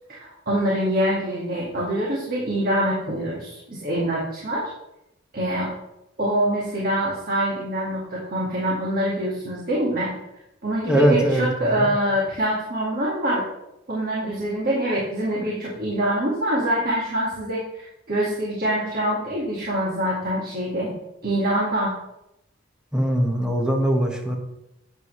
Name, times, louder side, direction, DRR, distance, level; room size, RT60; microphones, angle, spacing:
voice 1, 0.1-4.7 5.3-5.7 6.2-10.1 10.6-13.4 13.9-20.9 21.2-21.9, right 1 dB, 45° right, -4 dB, 2.1 m, -25 dB
voice 2, 10.9-11.9 22.9-24.4, right 1 dB, 5° right, 1 dB, 1.7 m, -21 dB
11.5 x 8.9 x 3.3 m, 0.86 s
head